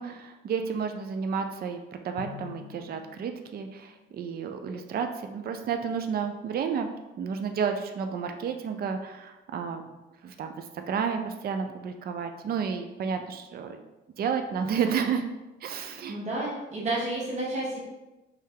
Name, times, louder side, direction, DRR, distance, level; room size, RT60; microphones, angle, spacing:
voice 1, 0.0-6.9 7.2-9.8 10.2-13.8 14.2-15.2 15.6-16.2, right 6 dB, 50° right, 6 dB, 0.4 m, -31 dB
Drum, 2.2-4.4, left 8 dB, 80° left, 0.4 m, -46 dB
voice 2, 15.7-17.8, right 2 dB, 35° right, -5 dB, 1.1 m, -31 dB
3.3 x 2.7 x 3.7 m, 1.0 s
cardioid pair, 90°, 20 cm